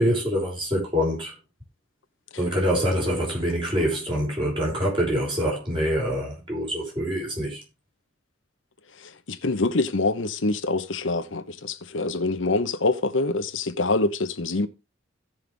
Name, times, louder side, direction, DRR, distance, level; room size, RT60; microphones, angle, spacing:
voice 1, 0.0-1.3 2.4-7.6, equal, 25° right, 5.7 m, -25 dB
voice 2, 9.0-14.7, left 3 dB, 85° left, 1.0 m, -25 dB
16.5 x 5.7 x 3.4 m
head